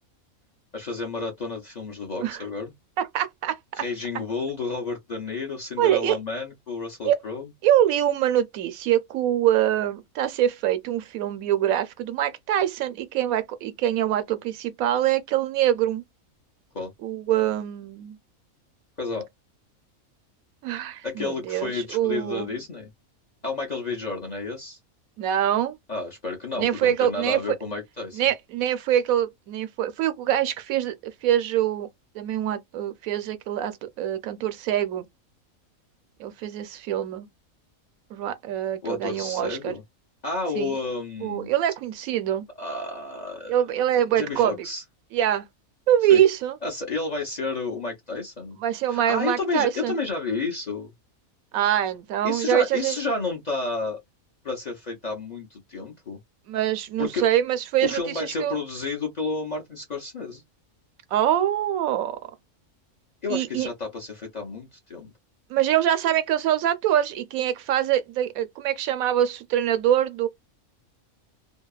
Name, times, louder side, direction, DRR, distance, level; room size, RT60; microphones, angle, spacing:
voice 1, 0.7-2.7 3.8-7.5 16.7-16.9 19.0-19.3 21.0-22.9 23.4-24.8 25.9-28.2 38.8-39.8 40.2-41.5 42.6-43.6 44.1-44.8 46.1-46.2 46.6-48.6 48.9-50.9 52.2-54.0 54.4-56.2 57.0-57.3 57.8-60.4 63.2-65.1, left 3 dB, 40° left, 0.7 m, -31 dB
voice 2, 3.0-3.6 5.8-6.2 7.0-7.2 7.6-16.0 17.0-18.2 20.6-22.5 25.2-25.8 26.6-27.6 28.1-31.9 32.1-35.1 36.2-37.3 38.1-39.7 40.5-40.7 41.2-42.4 43.5-44.6 45.1-45.5 45.9-46.6 48.6-49.9 51.5-53.0 56.5-58.6 61.1-62.2 63.3-63.7 65.5-70.3, right 11 dB, 80° right, 1.0 m, -24 dB
2.7 x 2.3 x 2.3 m
omnidirectional pair, 1.5 m